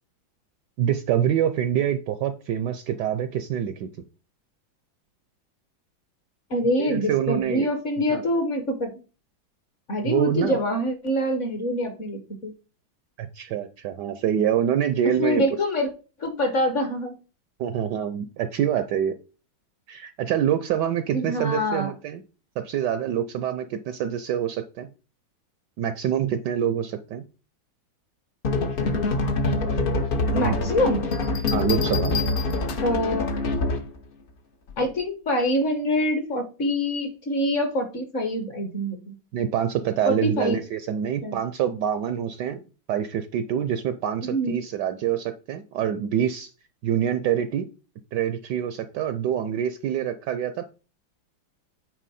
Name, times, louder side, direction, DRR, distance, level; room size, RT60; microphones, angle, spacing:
voice 1, 0.8-3.9 6.8-7.7 8.1-8.2 10.0-10.6 13.2-15.4 17.6-19.1 19.9-22.2 22.6-24.9 25.8-27.2 30.3-30.8 31.5-32.2 39.3-42.6 42.9-46.5 46.8-47.7 48.1-50.6, right 9 dB, 75° right, 10 dB, 1.0 m, -26 dB
voice 2, 6.5-8.9 9.9-12.5 15.2-15.9 16.2-17.1 21.1-21.9 30.3-31.1 32.8-33.3 34.8-39.2 40.1-40.6 41.2-41.4 44.2-44.6, equal, 45° left, 7 dB, 1.1 m, -25 dB
sound 1, 28.4-34.0, left 2 dB, 90° left, 0.4 m, -25 dB
sound 2, 31.1-33.1 34.7-35.0, left 8 dB, 60° left, 1.4 m, -34 dB
9.1 x 4.0 x 4.2 m, 0.34 s
omnidirectional pair, 2.2 m